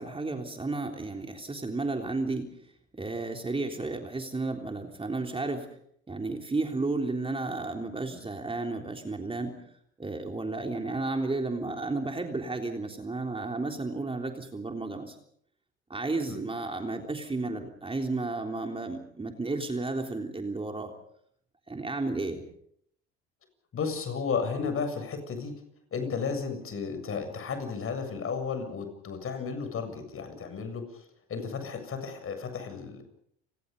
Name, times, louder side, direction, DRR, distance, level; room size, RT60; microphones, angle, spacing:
voice 1, 0.0-2.5 2.9-5.7 6.1-9.5 10.0-15.2 15.9-20.9 21.7-22.4, right 3 dB, 20° right, 4 dB, 3.6 m, -32 dB
voice 2, 23.7-25.5 25.9-31.0 31.3-33.0, left 5 dB, 45° left, 8 dB, 7.4 m, -33 dB
30.0 x 19.5 x 5.4 m, 0.70 s
hypercardioid pair, 70°, 30 cm